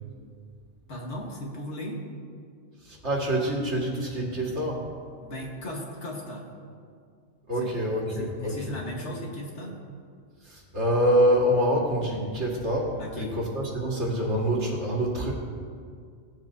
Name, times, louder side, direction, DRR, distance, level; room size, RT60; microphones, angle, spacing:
voice 1, 0.9-2.0 5.2-6.5 7.6-7.7 8.2-9.8 13.0-13.4, left 1 dB, 80° left, -1 dB, 1.8 m, -36 dB
voice 2, 2.8-4.8 7.5-8.8 10.4-15.3, equal, 85° right, -3 dB, 2.2 m, -26 dB
17.0 x 7.4 x 2.8 m, 2.1 s
omnidirectional pair, 1.2 m